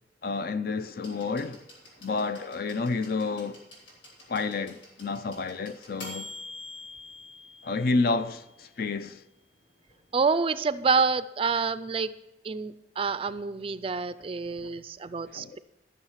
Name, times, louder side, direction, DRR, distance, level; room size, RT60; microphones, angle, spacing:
voice 1, 0.2-1.6 2.0-3.6 4.3-6.3 7.6-9.2 15.3-15.6, left 3 dB, 55° left, 0.5 m, -30 dB
sound 1, 1.0-8.8 9.9-10.0, left 2 dB, 85° left, 3.6 m, -47 dB
voice 2, 10.1-12.1 12.4-15.6, right 4 dB, 30° right, 0.4 m, -27 dB
13.0 x 6.4 x 5.7 m
head